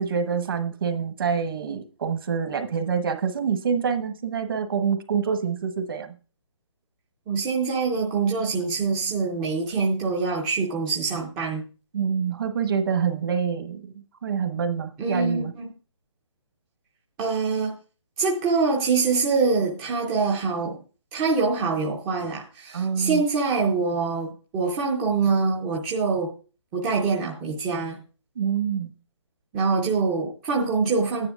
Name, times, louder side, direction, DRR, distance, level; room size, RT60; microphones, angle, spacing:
voice 1, 0.0-6.2 11.9-13.9 14.2-15.5 22.7-23.2 28.3-28.9, right 6 dB, 50° right, 7 dB, 1.2 m, -26 dB
voice 2, 7.3-11.6 15.0-15.7 17.2-17.7 18.2-20.8 21.1-26.3 26.7-28.0 29.5-31.3, right 4 dB, 10° right, -2 dB, 0.5 m, -24 dB
14.0 x 9.7 x 2.3 m, 0.36 s
hypercardioid pair, 165°, 16 cm